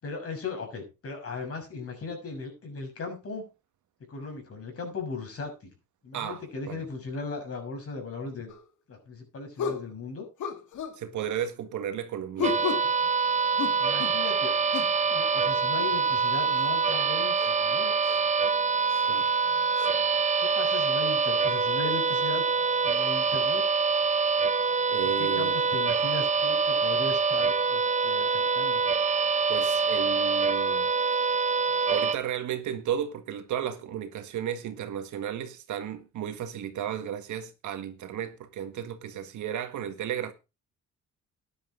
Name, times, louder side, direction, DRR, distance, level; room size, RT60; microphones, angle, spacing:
voice 1, 0.0-3.5 4.1-5.7 6.0-8.5 8.9-10.3 13.8-14.5 15.1-17.9 20.4-22.4 22.8-23.6 25.0-28.8, left 4 dB, 50° left, 6.4 m, -37 dB
voice 2, 6.1-6.9 11.0-12.6 19.1-19.3 24.9-25.5 29.5-30.9 31.9-40.3, right 9 dB, 75° right, 1.7 m, -33 dB
sound 1, 8.5-8.6 9.6-9.9 10.4-11.0 12.4-12.9 13.6-14.2 14.7-15.0 16.6-16.7 17.4-17.5 18.0-18.2 18.9-19.0 19.8-19.9, left 7 dB, 75° left, 2.1 m, -32 dB
sound 2, 12.4-32.1, right 5 dB, 25° right, 0.9 m, -25 dB
12.5 x 10.5 x 3.8 m
cardioid pair, 90°, 30 cm